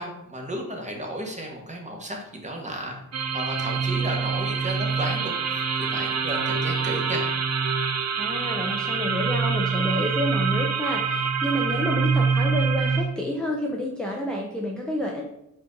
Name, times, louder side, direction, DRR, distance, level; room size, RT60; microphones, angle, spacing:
voice 1, 0.0-3.0 3.3-7.3, right 1 dB, 20° right, 0 dB, 1.1 m, -33 dB
sound 1, 3.1-13.0, right 5 dB, 45° right, 0.5 m, -25 dB
voice 2, 8.2-15.2, left 1 dB, 5° left, -2 dB, 0.6 m, -29 dB
4.3 x 2.6 x 3.7 m, 0.82 s
cardioid pair, 65°, 35 cm